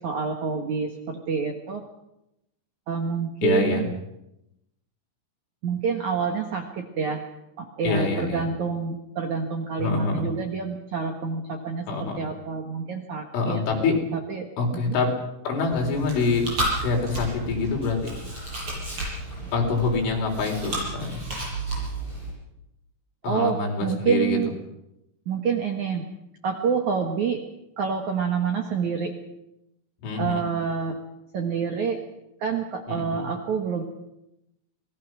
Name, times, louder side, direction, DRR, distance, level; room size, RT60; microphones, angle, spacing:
voice 1, 0.0-1.8 2.9-3.9 5.6-7.3 7.6-13.6 14.1-14.5 14.7-15.0 23.2-24.5 25.3-26.1 26.4-27.4 27.8-29.1 30.2-31.0 31.3-32.0 32.4-33.8, right 6 dB, 60° right, 3 dB, 2.0 m, -27 dB
voice 2, 3.4-3.8 7.8-8.5 9.8-10.2 11.9-12.2 13.3-13.9 14.6-15.1 15.4-16.5 16.8-18.1 19.5-21.2 23.2-24.4 30.0-30.4 32.9-33.1, left 4 dB, 85° left, 1 dB, 6.6 m, -25 dB
Chewing mastication, 15.7-22.3, right 1 dB, 25° right, 8.8 m, -32 dB
27.0 x 19.5 x 6.2 m, 0.87 s
omnidirectional pair, 5.4 m